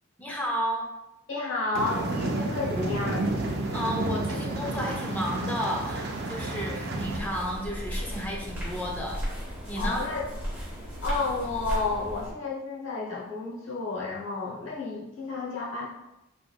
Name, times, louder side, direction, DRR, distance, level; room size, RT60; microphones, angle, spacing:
voice 1, 0.2-0.9 3.7-9.2 9.7-10.0, equal, 10° left, -2 dB, 0.6 m, -32 dB
voice 2, 1.3-3.3 9.8-10.2 11.0-15.9, left 3 dB, 65° left, -4 dB, 1.0 m, -31 dB
sound 1, 1.7-7.2, right 2 dB, 50° right, 0.5 m, -30 dB
sound 2, 6.9-12.3, equal, 10° right, 1.0 m, -35 dB
3.6 x 3.4 x 2.3 m, 0.92 s
head